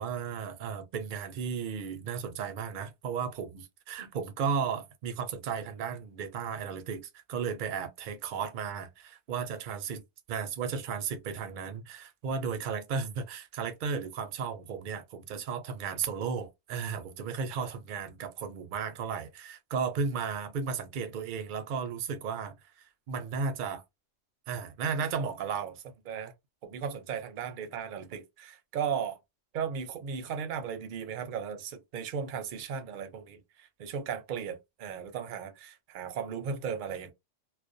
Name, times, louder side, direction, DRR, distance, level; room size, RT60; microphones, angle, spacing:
voice 1, 0.0-10.0 10.3-22.5 23.1-23.8 24.5-26.3 26.6-29.2 29.5-37.1, right 6 dB, 60° right, 0.5 m, -35 dB
2.3 x 2.1 x 2.6 m
omnidirectional pair, 1.3 m